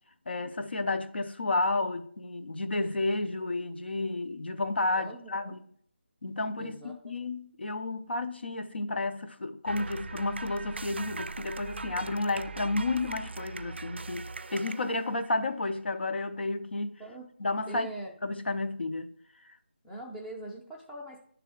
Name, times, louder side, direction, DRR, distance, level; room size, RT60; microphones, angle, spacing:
voice 1, 0.3-5.6 6.2-17.0 17.4-17.9 18.2-19.1, left 2 dB, 70° left, 0.6 m, -31 dB
voice 2, 4.9-5.6 6.6-7.0 7.3-7.4 17.0-17.3 17.7-18.1 19.8-21.2, right 1 dB, 5° left, 0.5 m, -42 dB
sound 1, 9.7-15.6, right 4 dB, 75° right, 0.4 m, -40 dB
9.4 x 3.4 x 3.7 m
figure-of-eight pair, 165°, 6 cm